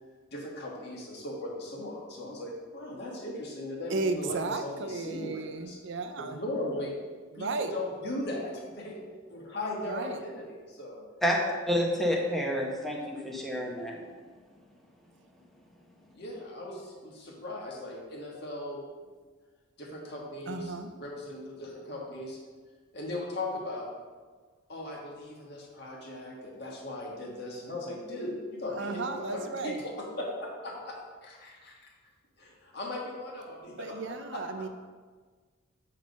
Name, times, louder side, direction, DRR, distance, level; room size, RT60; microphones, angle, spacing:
voice 1, 0.3-5.8 6.2-6.9 7.3-9.0 9.3-10.4 10.7-11.0 16.1-18.8 19.8-22.4 22.9-23.9 24.7-31.9 32.4-34.7, left 1 dB, 55° left, -2 dB, 1.4 m, -38 dB
voice 2, 3.9-6.4 7.3-7.7 9.8-10.2 20.5-20.9 28.8-29.8 33.8-34.7, right 3 dB, 60° right, 8 dB, 0.5 m, -34 dB
voice 3, 11.7-14.0, equal, ahead, -2 dB, 0.8 m, -29 dB
6.9 x 3.3 x 5.2 m, 1.4 s
head